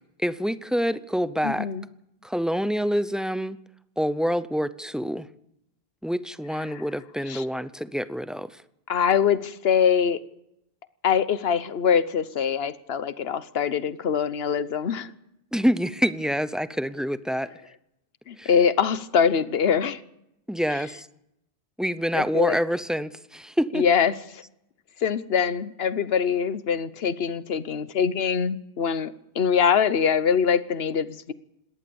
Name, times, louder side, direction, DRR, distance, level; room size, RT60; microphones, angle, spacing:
voice 1, 0.2-1.7 2.2-3.6 4.0-5.3 6.0-8.6 15.5-17.5 18.4-18.5 20.5-21.1 21.8-23.9, equal, ahead, 14 dB, 0.5 m, -26 dB
voice 2, 1.4-1.8 7.3-7.4 8.9-10.2 11.0-15.1 18.3-20.0 22.1-22.6 23.7-24.4 25.0-31.3, left 7 dB, 75° left, 15 dB, 1.2 m, -23 dB
20.5 x 18.0 x 7.0 m, 0.83 s
omnidirectional pair, 1.0 m